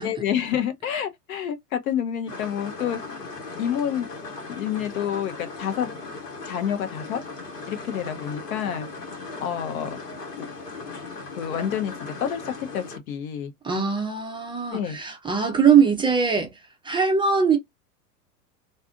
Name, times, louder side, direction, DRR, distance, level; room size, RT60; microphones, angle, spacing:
voice 1, 0.0-3.2 3.6-4.1 4.5-5.9 6.4-7.2 7.7-8.9 9.4-10.0 11.4-13.5 14.7-15.0, left 9 dB, 60° left, 1.1 m, -28 dB
sound 1, 2.3-13.0, left 3 dB, 85° left, 1.3 m, -38 dB
voice 2, 13.6-16.5 16.8-17.6, right 6 dB, 10° right, 0.6 m, -21 dB
2.6 x 2.4 x 3.6 m
hypercardioid pair, 100°, 47 cm